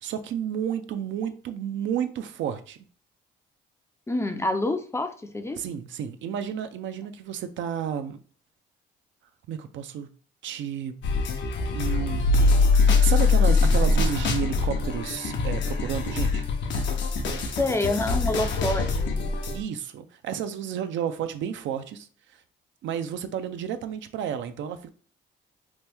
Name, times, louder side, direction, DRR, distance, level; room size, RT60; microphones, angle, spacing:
voice 1, 0.0-2.8 5.6-8.2 9.5-10.1 10.4-11.0 11.7-12.4 12.8-16.4 19.5-22.1 22.8-24.9, right 9 dB, 70° right, 0.4 m, -31 dB
voice 2, 4.1-5.6 17.6-19.3, left 2 dB, 15° left, 0.4 m, -27 dB
sound 1, 11.0-19.6, left 4 dB, 65° left, 0.6 m, -23 dB
3.0 x 2.1 x 3.3 m
cardioid pair, 90°, 20 cm